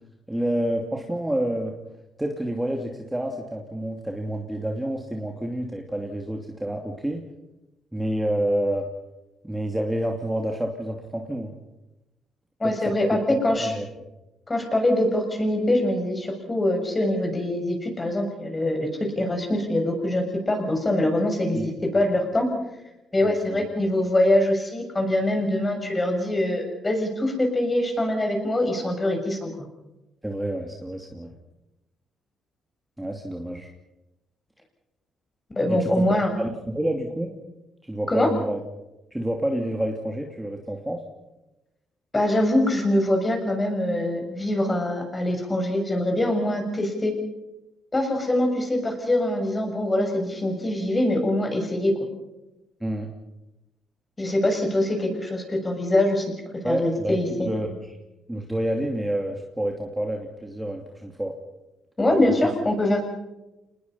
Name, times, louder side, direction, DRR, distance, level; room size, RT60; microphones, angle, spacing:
voice 1, 0.3-1.7 2.2-7.2 7.9-8.9 9.4-11.5 12.6-12.9 13.5-13.9 21.5-22.0 23.2-23.7 30.2-31.3 33.0-33.7 35.7-36.1 36.4-37.3 37.8-38.6 39.1-41.0 52.8-53.1 56.6-58.0 58.3-61.3 62.1-62.2, right 1 dB, 10° right, 2 dB, 2.7 m, -28 dB
voice 2, 12.6-13.7 14.5-18.9 19.2-21.6 21.9-22.5 23.1-29.5 35.5-36.3 38.1-38.3 42.1-47.1 47.9-51.9 54.2-56.3 56.6-57.5 62.0-63.0, left 1 dB, 20° left, 3 dB, 6.9 m, -23 dB
27.5 x 20.5 x 5.6 m, 0.97 s
cardioid pair, 90°, 0 cm